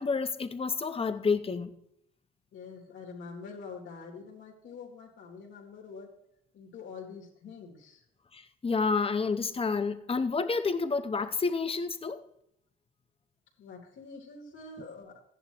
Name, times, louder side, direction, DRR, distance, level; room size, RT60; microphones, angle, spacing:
voice 1, 0.0-1.7 8.3-12.2, left 4 dB, 30° left, 0.9 m, -29 dB
voice 2, 2.5-6.1 6.5-8.0 13.6-15.2, left 4 dB, 75° left, 3.2 m, -45 dB
14.5 x 11.0 x 3.0 m
cardioid pair, 90°, 20 cm